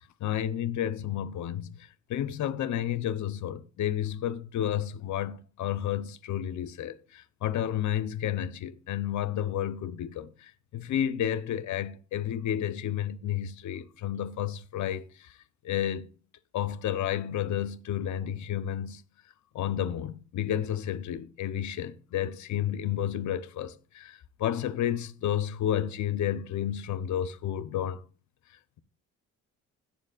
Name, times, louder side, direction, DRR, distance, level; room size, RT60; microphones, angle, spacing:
voice 1, 0.2-1.7 2.1-15.0 15.6-16.1 16.5-19.0 19.5-28.0, left 10 dB, 70° left, 0.8 m, -31 dB
16.5 x 7.2 x 2.4 m
cardioid pair, 90°, 30 cm